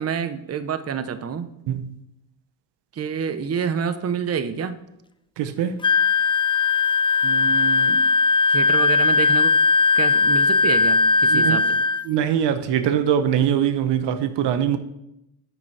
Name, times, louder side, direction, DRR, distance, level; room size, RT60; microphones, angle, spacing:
voice 1, 0.0-1.5 2.9-4.8 7.2-8.0 8.5-9.5 9.9-11.8, right 7 dB, 35° right, 0.7 m, -28 dB
voice 2, 5.4-5.8 11.3-11.6 12.0-14.8, right 9 dB, 80° right, 0.8 m, -22 dB
Wind instrument woodwind instrument, 5.8-12.1, left 4 dB, 15° left, 0.3 m, -18 dB
9.1 x 6.2 x 4.6 m
cardioid pair, 80°, 41 cm